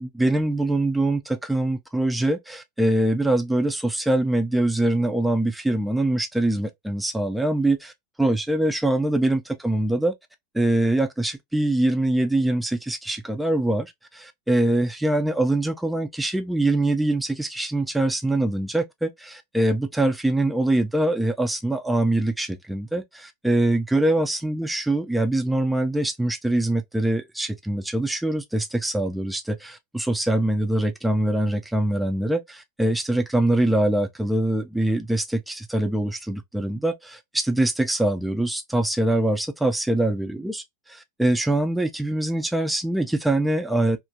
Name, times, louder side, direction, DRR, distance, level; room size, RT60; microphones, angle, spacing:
voice 1, 0.0-10.1 10.5-44.0, right 1 dB, 5° right, 0.3 m, -23 dB
2.3 x 2.1 x 2.6 m
supercardioid pair, 130°, 0 cm